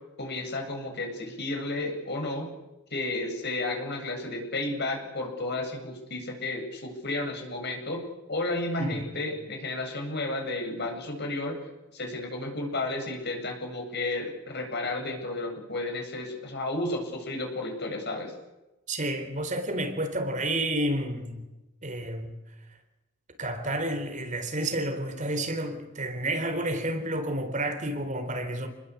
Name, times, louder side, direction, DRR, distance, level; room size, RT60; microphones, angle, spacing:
voice 1, 0.2-2.5 2.9-8.0 8.3-11.6 11.9-18.3, left 2 dB, 50° left, 8.0 m, -32 dB
voice 2, 18.9-21.5 21.8-22.3 23.4-28.7, right 1 dB, 35° right, 4.0 m, -30 dB
30.0 x 21.5 x 8.6 m
head